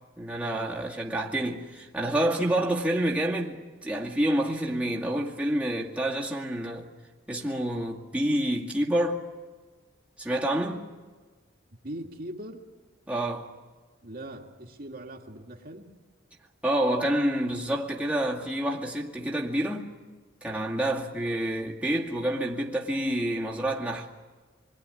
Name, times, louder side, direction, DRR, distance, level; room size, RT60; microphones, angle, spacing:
voice 1, 0.2-6.9 7.3-9.2 10.2-10.9 13.1-13.5 16.6-19.9 20.4-24.1, right 1 dB, 5° right, 2.2 m, -28 dB
voice 2, 11.8-12.6 14.0-15.9, right 1 dB, 50° right, 2.1 m, -40 dB
27.5 x 22.0 x 10.0 m
head